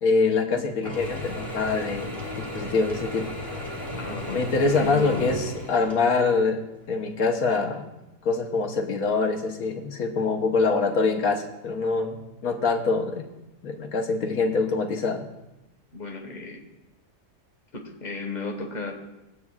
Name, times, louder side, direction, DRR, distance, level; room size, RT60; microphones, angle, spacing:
voice 1, 0.0-2.1 2.4-3.3 4.3-7.9 8.2-13.2 13.6-15.2, left 4 dB, 65° left, 2 dB, 1.4 m, -24 dB
Mechanisms / Drill, 0.8-6.3, left 1 dB, 15° right, 2.6 m, -35 dB
voice 2, 4.0-4.5 4.8-5.4 15.9-16.6 17.7-18.9, left 3 dB, 30° left, 2 dB, 1.3 m, -33 dB
21.0 x 8.5 x 2.4 m, 0.97 s
omnidirectional pair, 1.8 m